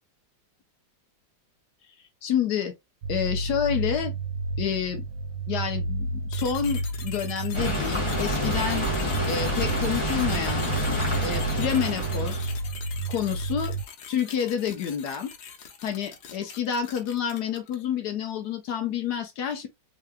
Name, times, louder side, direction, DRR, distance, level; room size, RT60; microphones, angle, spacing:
voice 1, 2.2-2.7 3.1-4.1 4.6-5.0 5.5-8.9 9.3-10.7 11.2-12.5 13.1-13.8 14.1-15.3 15.8-19.7, left 8 dB, 70° left, 1.2 m, -29 dB
sound 1, 3.0-13.8, right 3 dB, 80° right, 1.4 m, -31 dB
sound 2, 6.3-17.9, left 7 dB, 90° left, 1.6 m, -43 dB
sound 3, 7.5-12.5, left 1 dB, 15° left, 1.4 m, -28 dB
3.8 x 3.3 x 2.2 m
omnidirectional pair, 2.0 m